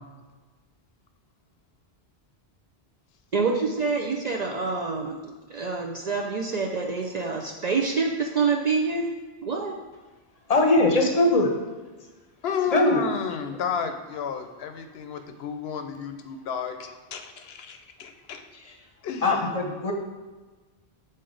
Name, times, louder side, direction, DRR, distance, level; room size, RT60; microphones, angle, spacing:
voice 1, 3.3-9.1 9.4-9.8, right 4 dB, 55° right, 1 dB, 0.5 m, -27 dB
voice 2, 10.5-11.5 12.7-13.0 19.2-19.9, left 2 dB, 40° left, 2 dB, 0.7 m, -20 dB
voice 3, 12.4-18.4 19.0-19.5, left 7 dB, 70° left, 6 dB, 0.8 m, -32 dB
6.6 x 4.0 x 3.8 m, 1.3 s
omnidirectional pair, 1.1 m